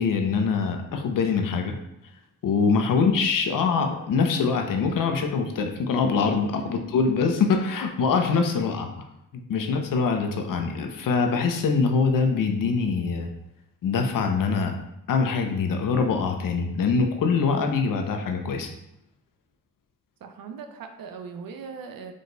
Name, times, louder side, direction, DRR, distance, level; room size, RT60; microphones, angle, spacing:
voice 1, 0.0-1.8 2.4-8.9 9.3-13.3 13.8-14.7 15.1-18.7, left 5 dB, 65° left, 5 dB, 0.7 m, -24 dB
voice 2, 20.2-22.1, right 6 dB, 75° right, 6 dB, 0.6 m, -39 dB
4.8 x 3.9 x 2.2 m, 0.84 s
cardioid pair, 80°, 35 cm